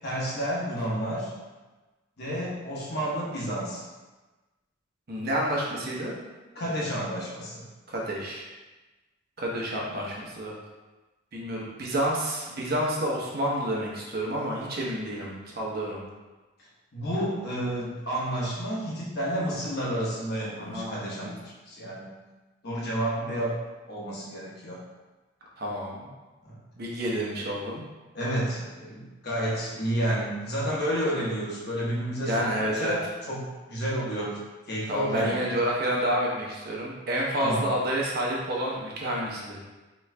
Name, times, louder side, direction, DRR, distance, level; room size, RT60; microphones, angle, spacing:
voice 1, 0.0-1.3 2.2-3.8 6.5-7.6 16.9-22.1 22.6-23.6 23.9-24.8 26.4-26.6 28.1-33.4 33.7-34.4 34.7-35.4 37.4-37.7, right 1 dB, 55° left, -5 dB, 1.1 m, -30 dB
voice 2, 5.1-6.2 7.9-8.4 9.4-10.5 11.3-16.0 20.6-21.0 25.6-26.1 26.8-27.8 32.2-33.0 34.9-39.6, equal, 50° right, -3 dB, 0.8 m, -29 dB
3.7 x 3.1 x 3.3 m, 1.2 s
head